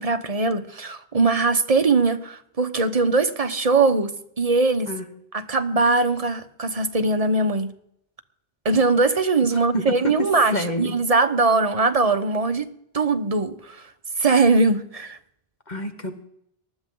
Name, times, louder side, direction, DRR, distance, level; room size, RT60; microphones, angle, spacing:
voice 1, 0.0-4.9 5.3-7.7 8.6-12.7 12.9-13.8 14.2-15.2, right 3 dB, 35° right, 8 dB, 1.2 m, -21 dB
voice 2, 9.7-10.1 10.5-10.9 15.7-16.1, equal, 45° left, 6 dB, 1.6 m, -27 dB
19.5 x 13.0 x 3.9 m, 0.72 s
omnidirectional pair, 1.1 m